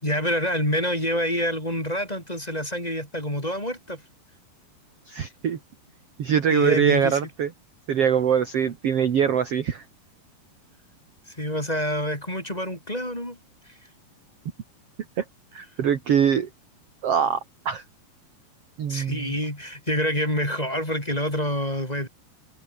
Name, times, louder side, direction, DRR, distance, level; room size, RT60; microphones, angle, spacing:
voice 1, 0.0-4.0 6.5-7.2 11.3-13.4 18.9-22.1, equal, 10° left, 5.2 m, -27 dB
voice 2, 5.1-5.6 6.2-7.5 7.9-9.8 15.2-15.3 15.5-16.5 17.0-17.4 17.7-17.8 18.8-19.3, right 8 dB, 50° right, 2.1 m, -23 dB
omnidirectional pair, 4.8 m